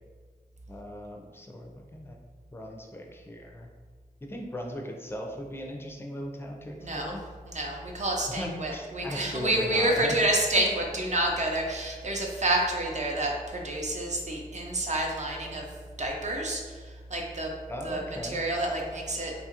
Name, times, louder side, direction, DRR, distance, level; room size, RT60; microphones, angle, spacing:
voice 1, 0.7-2.2 2.5-3.7 4.2-7.2 8.4-10.1 10.5-10.7 17.7-18.4, equal, 15° left, 1 dB, 0.4 m, -38 dB
voice 2, 6.8-7.1 7.4-15.7 16.0-17.5 17.8-19.3, right 1 dB, 50° right, 0 dB, 0.6 m, -29 dB
2.8 x 2.4 x 2.8 m, 1.5 s
wide cardioid pair, 55°, 16 cm